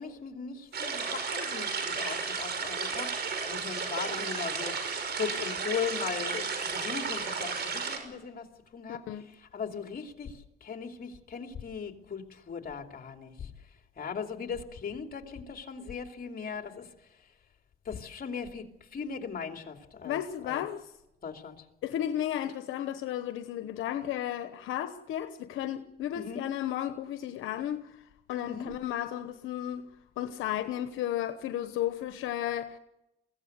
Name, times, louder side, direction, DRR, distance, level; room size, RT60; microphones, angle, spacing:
voice 1, 0.0-3.1 3.5-4.8 5.1-8.4 8.7-9.0 9.5-10.3 10.6-13.5 14.0-16.9 17.9-18.6 18.9-20.6 21.2-21.6 26.1-26.4 28.5-28.7, left 6 dB, 50° left, 2.9 m, -38 dB
sound 1, 0.7-8.0, right 5 dB, 55° right, 5.3 m, -33 dB
voice 2, 8.9-9.2 20.0-20.8 21.8-27.8 28.3-29.9 30.2-32.8, left 11 dB, 85° left, 1.1 m, -33 dB
23.0 x 16.5 x 8.1 m
cardioid pair, 90°, 20 cm